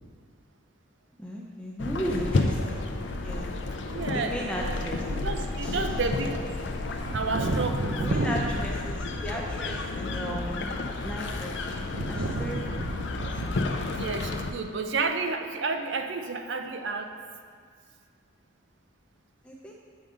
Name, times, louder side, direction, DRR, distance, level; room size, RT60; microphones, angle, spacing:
voice 1, 1.2-3.4 4.1-5.0 5.6-6.2 8.0-10.7 11.0-11.8 12.1-12.6 19.4-19.7, equal, 5° left, -3 dB, 0.5 m, -35 dB
sound 1, 1.8-14.5, left 2 dB, 60° left, 0.5 m, -31 dB
voice 2, 3.9-6.4 7.1-8.7 11.9-13.5 13.9-17.1, right 3 dB, 65° right, 6 dB, 0.5 m, -31 dB
8.4 x 5.2 x 3.7 m, 2.1 s
head